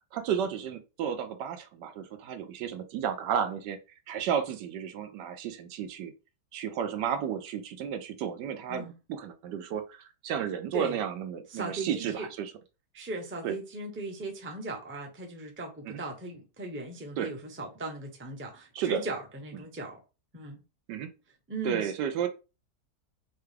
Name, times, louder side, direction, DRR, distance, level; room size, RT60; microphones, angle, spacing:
voice 1, 0.1-3.8 4.1-6.1 6.5-12.5 13.4-13.6 15.8-16.0 17.2-17.3 18.7-19.0 20.9-21.1 21.6-22.3, right 8 dB, 80° right, 1.3 m, -32 dB
voice 2, 11.5-12.3 12.9-20.0 20.3-20.6 21.5-21.9, right 2 dB, 10° right, 0.5 m, -38 dB
5.9 x 2.3 x 3.3 m
omnidirectional pair, 1.8 m